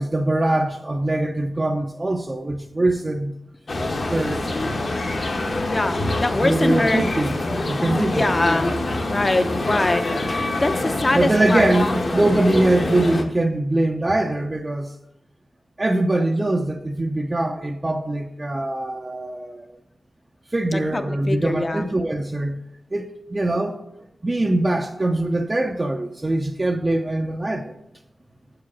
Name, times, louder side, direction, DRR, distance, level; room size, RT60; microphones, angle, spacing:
voice 1, 0.0-3.4 4.1-4.5 6.4-7.3 7.7-8.3 11.1-14.9 15.8-19.8 20.5-22.6 22.9-23.8 24.2-27.7, right 1 dB, 25° right, 0.5 m, -22 dB
sound 1, 3.7-13.2, left 2 dB, 55° left, 1.0 m, -25 dB
voice 2, 5.7-7.0 7.9-8.8 9.1-11.7 20.7-21.9, left 2 dB, 30° left, 0.6 m, -23 dB
6.6 x 4.8 x 5.9 m
wide cardioid pair, 95°, 0 cm